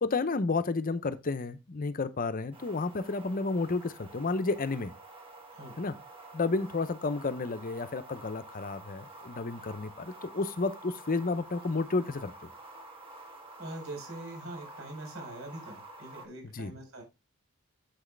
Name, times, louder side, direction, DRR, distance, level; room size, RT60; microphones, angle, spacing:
voice 1, 0.0-4.9 5.8-5.9 6.3-12.5 16.5-16.7, left 3 dB, 40° left, 0.7 m, -31 dB
sound 1, 2.5-16.3, right 2 dB, 25° right, 1.6 m, -49 dB
voice 2, 13.6-17.0, right 1 dB, 65° right, 4.2 m, -43 dB
8.1 x 6.2 x 3.2 m
head